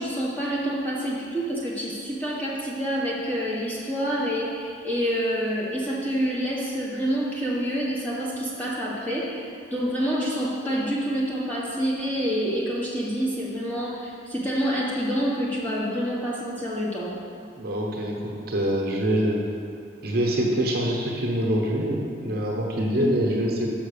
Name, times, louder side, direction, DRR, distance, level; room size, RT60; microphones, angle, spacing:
voice 1, 0.0-17.1 22.9-23.3, equal, 10° left, -6 dB, 1.3 m, -27 dB
voice 2, 17.6-19.4 20.0-23.7, equal, 50° right, -1 dB, 1.0 m, -25 dB
6.0 x 5.6 x 6.7 m, 2.3 s
head